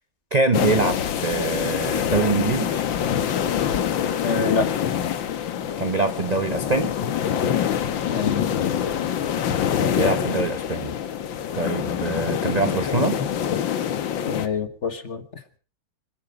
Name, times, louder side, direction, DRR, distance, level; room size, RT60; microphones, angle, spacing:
voice 1, 0.3-2.7 5.8-6.9 9.7-10.9 11.5-13.2, right 4 dB, 35° right, 9 dB, 0.7 m, -24 dB
sound 1, 0.5-14.5, left 9 dB, 85° left, 1.9 m, -25 dB
voice 2, 4.2-4.7 8.1-9.0 14.3-15.2, left 4 dB, 40° left, 9 dB, 1.6 m, -27 dB
27.0 x 9.0 x 5.6 m, 0.39 s
omnidirectional pair, 2.0 m